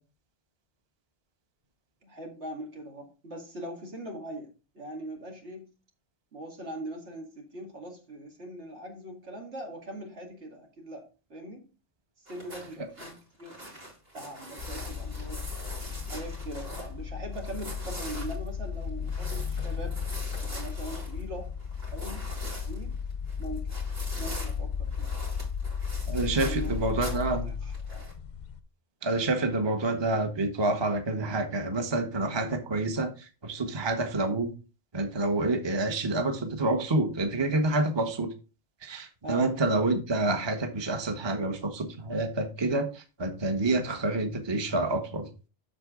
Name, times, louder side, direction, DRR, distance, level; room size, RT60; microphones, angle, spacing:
voice 1, 2.0-5.7 6.3-11.6 12.3-13.7 14.1-15.5 16.1-20.0 20.4-21.5 21.9-22.2 22.6-23.0 23.4-23.7 24.2-25.1 26.5-28.1 39.2-39.5, right 1 dB, 70° right, 1 dB, 2.6 m, -41 dB
sound 1, 12.3-17.0 17.3-24.6 24.9-27.3 27.7-28.1, right 1 dB, 55° right, 2.9 m, -43 dB
sound 2, 14.6-28.6, left 6 dB, 45° left, 0.7 m, -34 dB
voice 2, 26.1-27.4 29.0-34.5 34.9-38.3 38.8-45.3, right 2 dB, 25° right, 6 dB, 1.0 m, -28 dB
8.0 x 6.8 x 3.7 m, 0.32 s
omnidirectional pair, 1.2 m